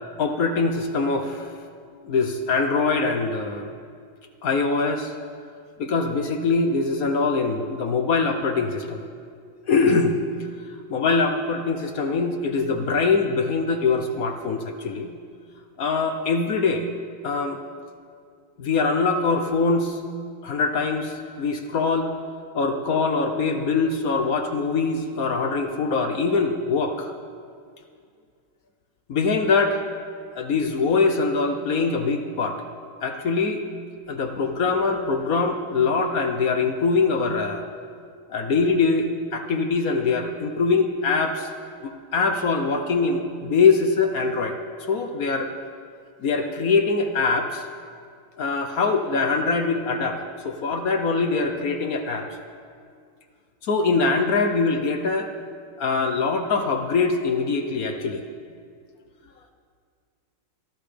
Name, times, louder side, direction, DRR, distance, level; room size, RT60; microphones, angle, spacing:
voice 1, 0.2-1.5 2.0-3.7 4.4-5.1 5.8-9.0 9.7-10.2 10.9-15.1 15.8-16.9 17.2-17.6 18.6-20.0 20.4-22.1 22.5-27.1 29.1-29.8 30.3-32.6 33.0-33.6 34.1-37.7 38.3-41.5 41.8-44.6 44.9-45.5 46.2-47.6 48.4-52.3 53.6-55.3 55.8-58.2, left 4 dB, 60° left, 6 dB, 1.0 m, -23 dB
22.5 x 13.5 x 3.4 m, 2.2 s
omnidirectional pair, 2.3 m